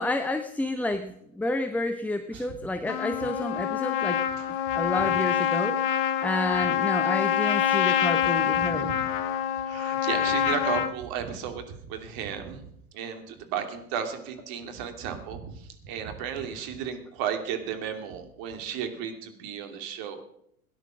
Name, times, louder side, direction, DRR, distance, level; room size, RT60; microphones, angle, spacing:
voice 1, 0.0-4.2 4.7-5.8 6.2-8.9, left 2 dB, 5° left, 8 dB, 0.8 m, -30 dB
Trumpet, 2.9-10.9, left 10 dB, 45° left, 1.5 m, -26 dB
voice 2, 7.7-8.1 8.7-9.0 9.6-12.6 12.9-20.2, right 8 dB, 50° right, 6 dB, 2.8 m, -34 dB
18.0 x 10.5 x 6.2 m, 0.72 s
hypercardioid pair, 90°, 45 cm